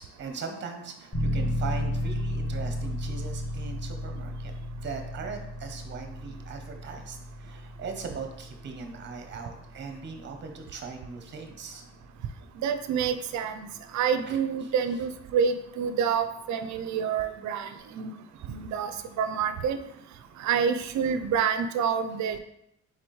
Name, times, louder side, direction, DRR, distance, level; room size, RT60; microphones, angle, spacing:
voice 1, 0.0-4.5 4.8-11.8 13.4-13.5 14.3-15.1, right 5 dB, 35° right, 5 dB, 0.7 m, -40 dB
sound 1, 1.1-11.7, equal, 30° left, 1.5 m, -34 dB
voice 2, 12.6-13.7 13.9-17.7 18.0-18.1 18.5-18.9 19.2-19.8 20.4-22.4, right 7 dB, 70° right, 9 dB, 0.5 m, -27 dB
4.2 x 3.9 x 3.1 m, 0.77 s
cardioid pair, 90°, 30 cm